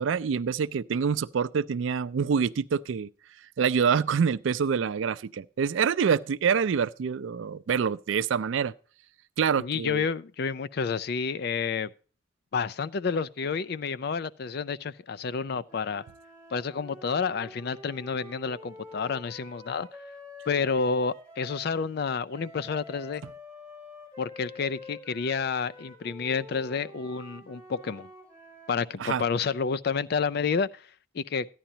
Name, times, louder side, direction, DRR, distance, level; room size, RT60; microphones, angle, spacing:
voice 1, 0.0-3.1 3.6-8.7 9.4-10.1 29.0-29.2, right 6 dB, 75° right, 0.4 m, -26 dB
voice 2, 9.6-11.9 12.5-16.0 16.5-19.9 20.5-23.2 24.2-28.1 28.7-30.8 31.1-31.5, left 5 dB, 55° left, 0.4 m, -29 dB
sound 1, 15.7-21.7 22.3-29.0, left 2 dB, 10° left, 3.3 m, -47 dB
13.5 x 10.0 x 2.8 m
head